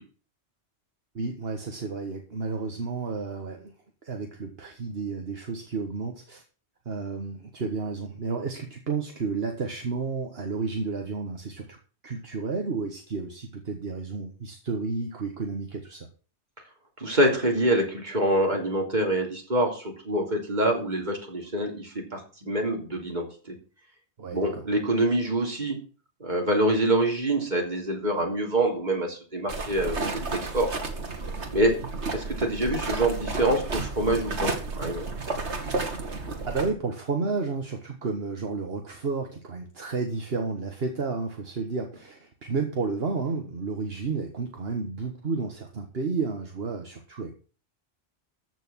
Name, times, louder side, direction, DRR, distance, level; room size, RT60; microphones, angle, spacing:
voice 1, 1.2-3.7 4.0-6.4 6.9-11.8 12.0-16.1 24.2-24.6 36.5-47.3, right 4 dB, 60° right, 4 dB, 1.8 m, -31 dB
voice 2, 17.0-23.6 24.3-25.8 26.2-30.7 31.5-31.7 32.1-35.1, right 1 dB, 40° right, 1 dB, 3.6 m, -26 dB
sound 1, 29.5-36.7, right 3 dB, 90° right, 2.2 m, -32 dB
14.5 x 6.5 x 6.3 m, 0.38 s
omnidirectional pair, 1.1 m